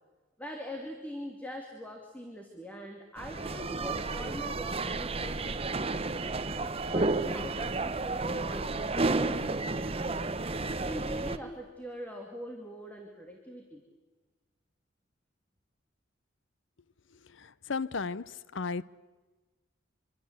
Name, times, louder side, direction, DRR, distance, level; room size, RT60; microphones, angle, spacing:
voice 1, 0.4-6.2 6.6-10.4 10.8-13.8, equal, 10° left, 2.7 m, -43 dB
sound 1, 3.2-11.4, right 3 dB, 30° right, 1.0 m, -32 dB
voice 2, 17.4-18.8, left 4 dB, 75° left, 0.8 m, -34 dB
25.5 x 25.5 x 8.2 m
head